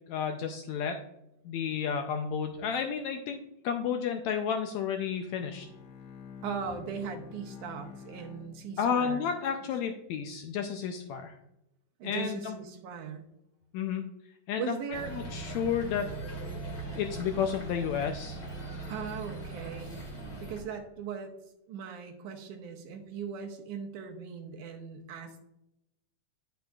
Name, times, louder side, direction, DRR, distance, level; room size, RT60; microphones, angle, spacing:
voice 1, 0.1-1.0 1.4-5.7 8.8-11.4 12.0-12.6 13.7-14.0 14.5-14.8 15.1-16.1 16.9-18.4, left 7 dB, 90° left, 5 dB, 1.5 m, -31 dB
Bowed string instrument, 5.2-9.3, left 6 dB, 70° left, 1.6 m, -48 dB
voice 2, 6.4-9.2 12.0-13.2 14.6-15.1 18.9-19.9 20.2-21.3 21.7-25.4, right 6 dB, 75° right, 3 dB, 2.2 m, -39 dB
sound 1, 14.9-20.6, right 2 dB, 25° left, 1.8 m, -40 dB
10.5 x 6.2 x 2.3 m, 0.84 s
omnidirectional pair, 3.8 m